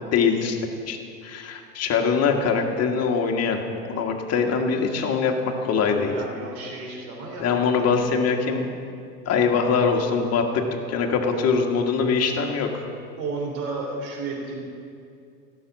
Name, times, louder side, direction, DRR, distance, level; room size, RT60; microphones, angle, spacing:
voice 1, 0.1-0.6 0.9-1.0 1.2-6.1 7.4-8.7 9.3-12.9, left 5 dB, 30° left, 2 dB, 1.6 m, -23 dB
voice 2, 6.0-8.2 9.5-10.0 11.3-11.4 13.2-14.6, right 3 dB, 55° right, 0 dB, 3.2 m, -33 dB
16.0 x 6.7 x 7.2 m, 2.5 s
figure-of-eight pair, 90°, 50 cm